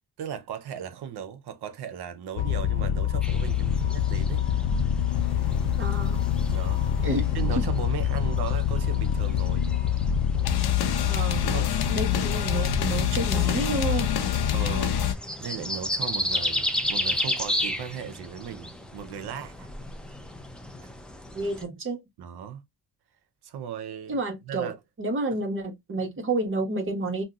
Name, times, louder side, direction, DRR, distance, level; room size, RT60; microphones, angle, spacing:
voice 1, 0.2-4.5 6.5-6.8 7.3-9.7 11.4-11.7 13.1-13.3 14.5-15.0 15.4-19.7 20.8-20.9 22.2-22.6 23.4-24.2 24.5-24.8, right 8 dB, 80° right, 0.7 m, -37 dB
sound 1, 2.4-15.1, left 9 dB, 75° left, 0.6 m, -25 dB
sound 2, 3.2-21.6, left 1 dB, 5° left, 0.3 m, -34 dB
voice 2, 5.8-6.2 7.0-7.7 11.1-11.4 11.9-14.4 21.3-22.0 24.1-27.2, right 2 dB, 30° right, 1.1 m, -30 dB
2.7 x 2.2 x 3.6 m
cardioid pair, 140°, 38 cm